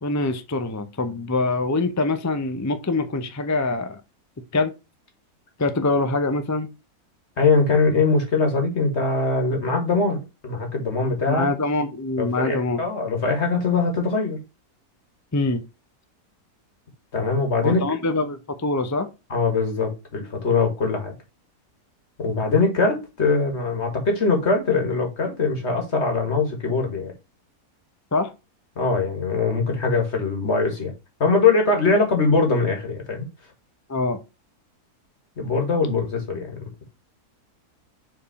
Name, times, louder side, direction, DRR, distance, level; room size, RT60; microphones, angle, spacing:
voice 1, 0.0-4.0 4.5-4.7 5.6-6.7 11.3-12.8 15.3-15.6 17.6-19.1 28.1-28.3 33.9-34.2, left 2 dB, 25° left, 0.3 m, -24 dB
voice 2, 7.4-11.5 12.2-14.4 17.1-17.8 19.3-21.1 22.2-27.1 28.8-30.9 31.2-33.3 35.4-36.7, left 4 dB, 45° left, 2.1 m, -22 dB
5.4 x 4.6 x 4.1 m
omnidirectional pair, 1.6 m